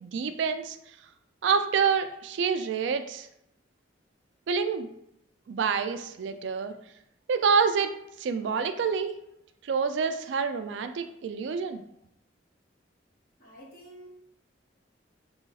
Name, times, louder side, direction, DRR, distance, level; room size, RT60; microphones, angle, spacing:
voice 1, 0.0-0.8 1.4-3.3 4.5-4.9 5.5-6.7 7.3-7.9 8.2-9.1 9.6-11.8, right 6 dB, 75° right, 8 dB, 0.3 m, -27 dB
voice 2, 13.4-14.1, right 1 dB, 55° left, -5 dB, 1.3 m, -49 dB
3.0 x 2.3 x 4.0 m, 0.77 s
head